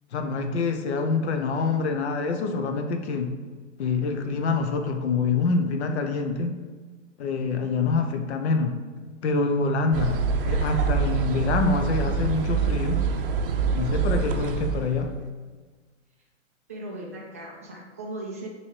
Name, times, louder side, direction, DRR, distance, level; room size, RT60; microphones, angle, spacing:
voice 1, 0.1-3.4 3.8-6.5 7.2-8.8 9.2-13.0 13.7-15.1, left 4 dB, 60° left, 5 dB, 0.9 m, -26 dB
sound 1, 9.9-15.3, right 5 dB, 45° right, 0.6 m, -25 dB
voice 2, 16.7-18.5, right 1 dB, 15° right, -4 dB, 0.3 m, -37 dB
6.9 x 3.2 x 4.7 m, 1.4 s
hypercardioid pair, 155°, 38 cm